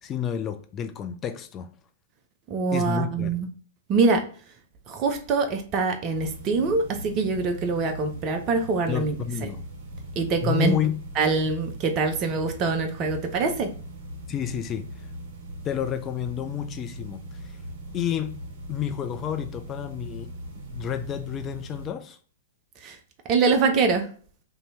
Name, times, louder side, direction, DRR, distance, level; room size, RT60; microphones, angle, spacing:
voice 1, 0.0-1.7 2.7-3.3 8.9-9.6 10.4-11.0 14.3-14.9 15.6-17.2 17.9-18.4 18.7-20.3 20.7-22.2, left 9 dB, 25° left, 0.3 m, -30 dB
voice 2, 2.5-3.5 3.9-4.2 4.9-9.2 9.4-9.5 10.2-10.7 11.2-13.7 22.8-23.0 23.3-24.1, right 4 dB, 30° right, 0.5 m, -24 dB
sound 1, 6.1-21.9, right 1 dB, 55° right, 1.3 m, -40 dB
2.8 x 2.7 x 3.1 m
figure-of-eight pair, 105°, 0 cm